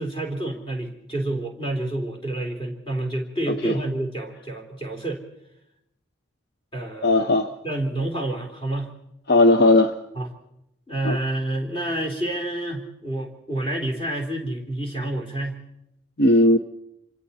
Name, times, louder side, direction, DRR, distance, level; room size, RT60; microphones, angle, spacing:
voice 1, 0.0-5.2 6.7-7.3 7.6-8.9 10.1-10.3 10.9-15.6, right 1 dB, 25° left, 1 dB, 3.4 m, -28 dB
voice 2, 7.0-7.5 9.3-9.9 11.0-11.2 16.2-16.6, left 2 dB, 55° left, 8 dB, 0.7 m, -17 dB
27.0 x 25.0 x 4.2 m, 0.83 s
head